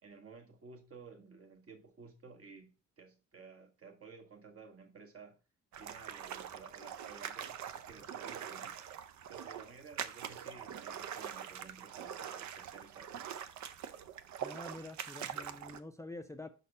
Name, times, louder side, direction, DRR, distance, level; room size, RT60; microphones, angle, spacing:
voice 1, 0.0-5.4 5.8-8.8 9.3-13.4, right 5 dB, 50° right, 1.4 m, -54 dB
sound 1, 5.7-15.8, right 9 dB, 70° right, 0.6 m, -44 dB
voice 2, 14.4-16.5, left 2 dB, 10° left, 0.4 m, -47 dB
5.2 x 4.1 x 5.2 m
cardioid pair, 90°, 30 cm